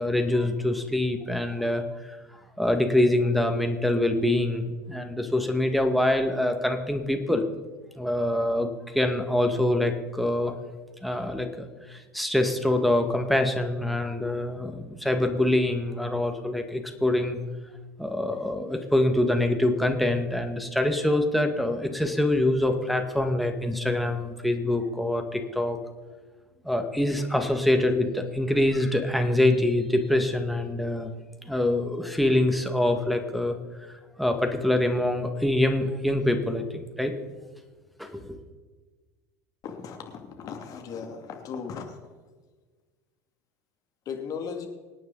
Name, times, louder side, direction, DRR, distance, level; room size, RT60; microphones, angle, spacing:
voice 1, 0.0-2.2 2.6-7.5 8.0-10.5 11.0-17.4 18.0-25.8 26.6-31.1 31.5-33.6 33.9-37.1 38.0-38.4, left 1 dB, ahead, 4 dB, 2.1 m, -25 dB
voice 2, 39.6-40.0 40.4-41.8 44.1-44.7, left 6 dB, 45° left, 4 dB, 2.7 m, -36 dB
25.0 x 9.3 x 4.1 m, 1.3 s
hypercardioid pair, 75°, 9 cm